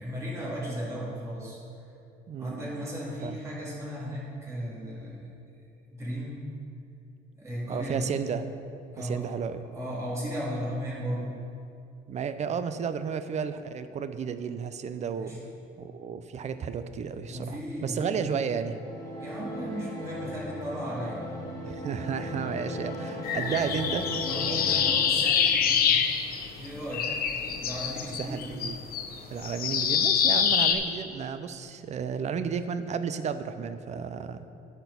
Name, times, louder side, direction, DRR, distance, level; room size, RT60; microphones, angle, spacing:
voice 1, 0.0-1.6 2.4-5.3 5.9-6.4 7.3-8.2 8.9-9.2 9.7-11.4 15.2-15.4 17.3-18.2 19.2-21.2 23.6-23.8 24.3-26.0 26.6-27.1 27.6-28.5, equal, 15° right, -8 dB, 2.4 m, -36 dB
voice 2, 2.3-2.7 3.2-3.4 7.7-8.4 9.0-9.6 12.1-15.3 15.8-18.8 21.7-24.1 28.2-28.8 29.3-34.4, right 6 dB, 40° right, 11 dB, 0.5 m, -33 dB
sound 1, 18.6-25.0, equal, 20° left, 1.7 m, -37 dB
sound 2, 23.2-26.7 26.9-30.8, left 7 dB, 60° left, 0.8 m, -25 dB
10.0 x 4.4 x 6.9 m, 2.7 s
cardioid pair, 110°, 17 cm